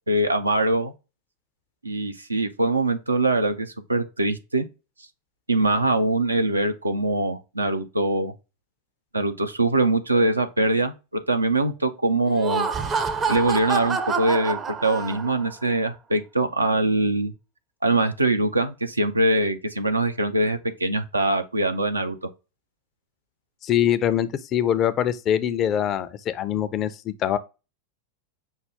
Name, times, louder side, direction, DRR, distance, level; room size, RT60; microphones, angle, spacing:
voice 1, 0.1-0.9 1.8-4.7 5.5-8.3 9.1-12.7 13.3-17.3 17.8-22.1, right 2 dB, 80° right, 0.5 m, -23 dB
Laughter, 12.3-15.5, right 5 dB, 20° right, 0.5 m, -27 dB
voice 2, 23.6-27.4, left 10 dB, 30° left, 0.4 m, -23 dB
5.5 x 2.2 x 3.3 m
figure-of-eight pair, 90°, 0 cm